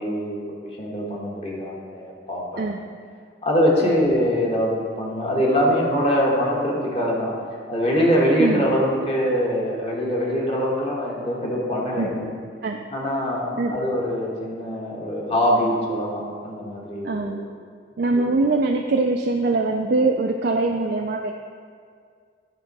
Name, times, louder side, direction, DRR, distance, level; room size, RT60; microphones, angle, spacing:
voice 1, 0.0-2.6 3.4-7.4 7.7-12.3 12.9-17.4 18.2-18.4, equal, 30° left, -3 dB, 1.3 m, -23 dB
voice 2, 17.0-17.4 18.0-21.3, right 3 dB, 55° right, 2 dB, 0.4 m, -22 dB
10.0 x 3.7 x 5.3 m, 2.1 s
head